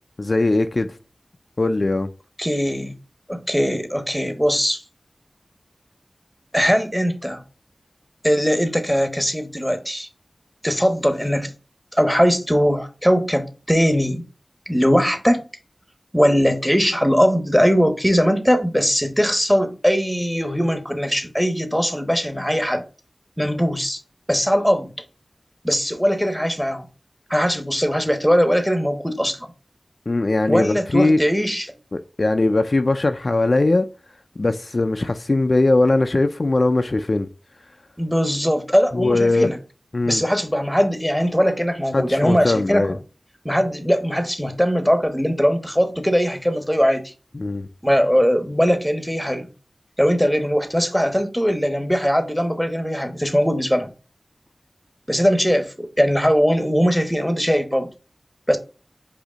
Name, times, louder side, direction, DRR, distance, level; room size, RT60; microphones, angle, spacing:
voice 1, 0.2-0.9 1.6-2.1 30.1-31.2 31.9-33.9 34.4-37.3 38.9-39.5 39.9-40.2 41.9-43.0 47.3-47.7, left 2 dB, 60° left, 0.4 m, -20 dB
voice 2, 2.4-2.9 3.3-4.8 6.5-7.4 8.2-10.1 10.6-11.5 11.9-14.2 14.7-15.4 16.1-22.8 23.4-24.0 24.3-24.9 25.6-26.9 27.3-29.5 30.5-31.8 38.0-39.6 40.1-43.0 43.4-47.1 47.8-49.5 50.0-53.9 55.1-57.9 58.5-58.6, equal, ahead, 1.1 m, -20 dB
5.0 x 2.7 x 3.8 m
wide cardioid pair, 45°, 0 cm